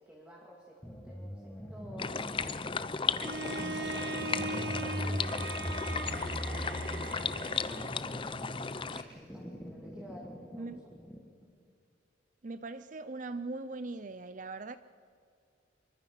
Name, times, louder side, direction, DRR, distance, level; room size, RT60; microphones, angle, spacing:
voice 1, 0.0-2.3 3.0-10.8, equal, 5° right, 2.6 m, -52 dB
sound 1, 0.8-11.3, equal, 10° left, 1.6 m, -41 dB
sound 2, 2.0-9.0, left 5 dB, 25° left, 0.6 m, -35 dB
Bowed string instrument, 3.2-8.1, right 3 dB, 55° right, 1.3 m, -39 dB
voice 2, 12.4-14.8, right 3 dB, 40° right, 0.5 m, -40 dB
26.5 x 23.5 x 5.7 m
head